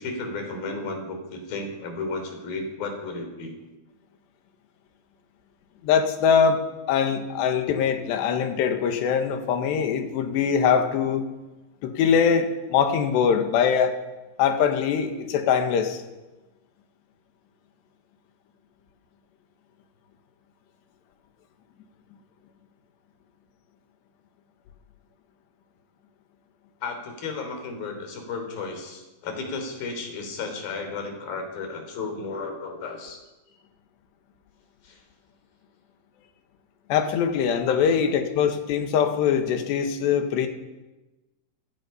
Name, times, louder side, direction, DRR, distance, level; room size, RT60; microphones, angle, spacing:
voice 1, 0.0-3.5 26.8-33.2 34.8-35.0 37.7-37.8, left 3 dB, 55° left, 4 dB, 5.2 m, -33 dB
voice 2, 5.8-11.3 11.8-13.9 14.4-16.0 36.9-40.5, left 7 dB, 75° left, 6 dB, 3.8 m, -22 dB
28.0 x 16.5 x 5.7 m, 1.1 s
omnidirectional pair, 5.1 m